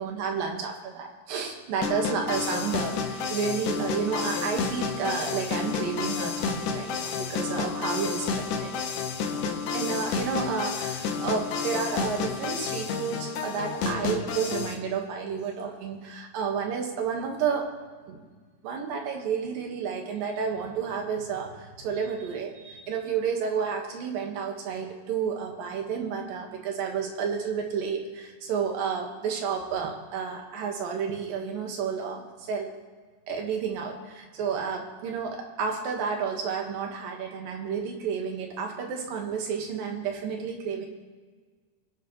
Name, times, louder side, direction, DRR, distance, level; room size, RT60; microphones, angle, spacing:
voice 1, 0.0-8.9 9.7-17.7 18.1-18.3 18.6-32.7 33.3-40.9, right 6 dB, 75° right, 2 dB, 3.3 m, -31 dB
sound 1, 1.8-14.7, left 5 dB, 70° left, 2.5 m, -30 dB
24.0 x 11.5 x 3.2 m, 1.5 s
omnidirectional pair, 4.0 m